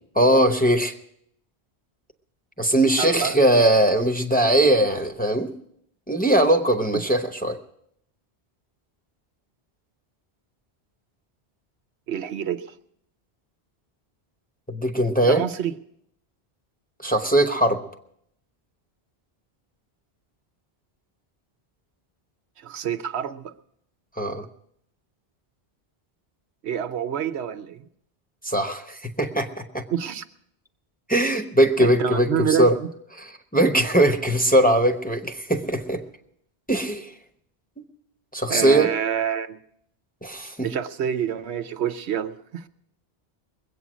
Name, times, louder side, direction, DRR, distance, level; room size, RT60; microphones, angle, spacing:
voice 1, 0.1-0.9 2.6-5.5 6.1-7.6 14.7-15.4 17.0-17.8 24.2-24.5 28.4-29.5 29.7-29.8 31.1-32.8 33.1-36.0 36.7-37.1 38.3-38.9 40.2-40.5, right 1 dB, 10° left, 0.8 m, -20 dB
voice 2, 3.0-3.4 12.1-12.6 15.2-15.7 22.6-23.5 26.6-27.8 29.9-30.2 31.8-32.9 38.5-39.6 40.6-42.6, right 8 dB, 90° right, 1.0 m, -27 dB
21.5 x 8.4 x 6.2 m
omnidirectional pair, 1.1 m